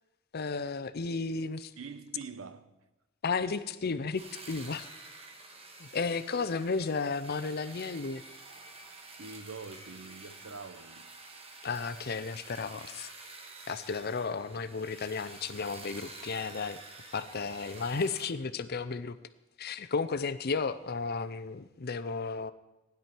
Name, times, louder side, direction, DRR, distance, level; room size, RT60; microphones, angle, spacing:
voice 1, 0.3-1.7 3.2-4.9 5.8-8.2 11.6-13.1 13.7-16.8 17.1-19.2 19.6-22.5, left 4 dB, 50° left, 0.6 m, -33 dB
voice 2, 1.8-2.8 9.2-11.2 17.8-18.0, right 4 dB, 85° right, 0.8 m, -45 dB
sound 1, 4.2-18.3, right 3 dB, 30° right, 1.4 m, -49 dB
16.0 x 10.5 x 4.5 m
head